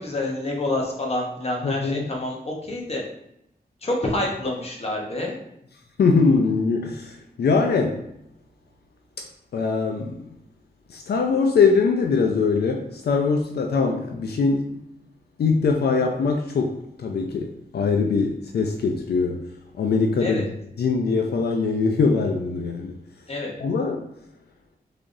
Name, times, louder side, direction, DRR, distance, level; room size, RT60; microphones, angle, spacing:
voice 1, 0.0-3.0 3.8-5.4 20.2-20.4 23.3-23.5, left 1 dB, 40° left, -1 dB, 0.8 m, -27 dB
voice 2, 1.6-2.1 6.0-8.0 9.5-10.3 10.9-14.7 15.4-19.4 19.8-20.4 20.8-22.9 23.6-24.0, left 4 dB, 80° left, 3 dB, 0.4 m, -22 dB
3.6 x 3.3 x 2.5 m, 0.80 s
wide cardioid pair, 130°, 16 cm